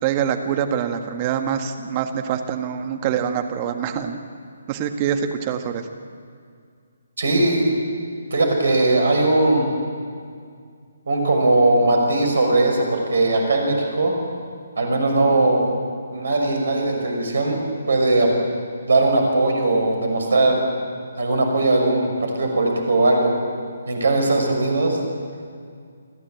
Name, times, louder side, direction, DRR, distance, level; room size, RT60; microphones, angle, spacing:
voice 1, 0.0-4.2 4.7-5.9, right 8 dB, 30° right, 6 dB, 1.7 m, -25 dB
voice 2, 7.2-7.7 8.3-9.7 11.1-14.2 14.8-15.7 16.1-17.6 17.9-18.3 18.9-20.6 21.2-23.3 23.9-25.0, right 2 dB, 65° right, 2 dB, 6.1 m, -19 dB
29.0 x 12.0 x 8.6 m, 2.2 s
figure-of-eight pair, 140°, 0 cm